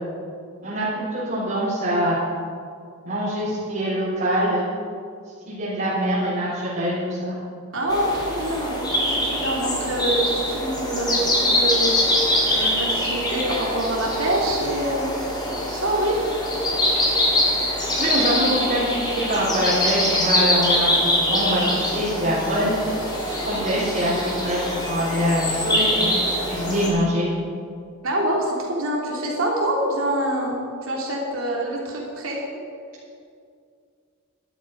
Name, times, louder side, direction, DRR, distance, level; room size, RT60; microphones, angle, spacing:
voice 1, 1.1-2.2 3.0-4.6 5.5-7.3 18.0-19.0 19.3-22.7 23.2-24.6 24.9-27.2, equal, 45° right, -10 dB, 3.9 m, -24 dB
voice 2, 7.7-15.1 15.4-16.2 28.0-32.4, right 1 dB, 65° right, -2 dB, 3.2 m, -26 dB
sound 1, 7.9-26.9, left 1 dB, 20° left, 2.8 m, -24 dB
12.5 x 12.0 x 5.2 m, 2.3 s
head